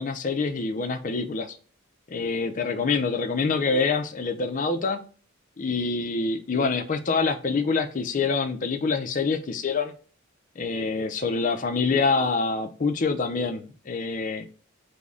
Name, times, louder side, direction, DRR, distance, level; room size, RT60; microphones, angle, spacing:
voice 1, 0.0-1.6 2.1-5.0 5.6-9.9 10.6-14.5, left 4 dB, 35° left, 0.4 m, -26 dB
3.6 x 2.1 x 3.6 m
head